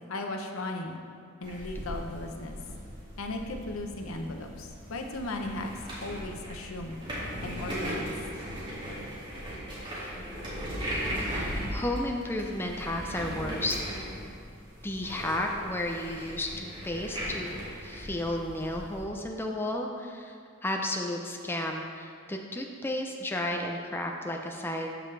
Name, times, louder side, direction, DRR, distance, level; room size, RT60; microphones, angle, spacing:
voice 1, 0.1-1.0 1.4-2.6 3.2-5.7 6.0-7.0 7.4-8.1, left 2 dB, 75° left, 3 dB, 0.8 m, -36 dB
sound 1, 1.4-19.0, equal, 25° right, 2.2 m, -38 dB
voice 2, 11.7-13.8 14.8-20.4 20.6-25.0, left 1 dB, 10° left, 1 dB, 0.5 m, -33 dB
13.5 x 5.1 x 3.3 m, 2.2 s
head